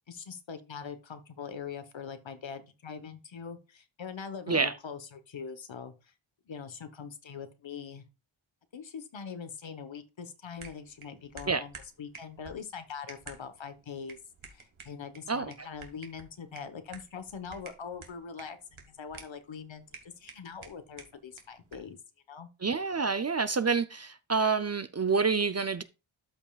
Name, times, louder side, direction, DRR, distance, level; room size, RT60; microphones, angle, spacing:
voice 1, 0.1-6.1 6.5-8.0 8.7-14.2 14.5-22.0 22.3-22.5, left 6 dB, 65° left, 1.2 m, -42 dB
sound 1, 10.6-22.0, right 5 dB, 75° right, 1.8 m, -52 dB
voice 2, 15.3-15.7 22.6-25.8, right 4 dB, 35° right, 0.5 m, -28 dB
13.0 x 5.4 x 2.4 m
wide cardioid pair, 95°, 49 cm